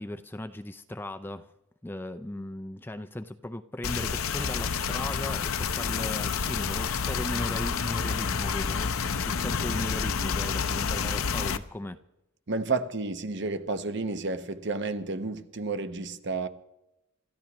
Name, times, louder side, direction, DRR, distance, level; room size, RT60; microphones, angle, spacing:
voice 1, 0.0-1.5 1.8-12.0, left 1 dB, 10° left, 0.4 m, -37 dB
sound 1, 3.8-11.6, left 6 dB, 75° left, 0.7 m, -29 dB
voice 2, 12.5-16.5, right 3 dB, 55° right, 1.0 m, -31 dB
27.0 x 14.0 x 3.0 m
head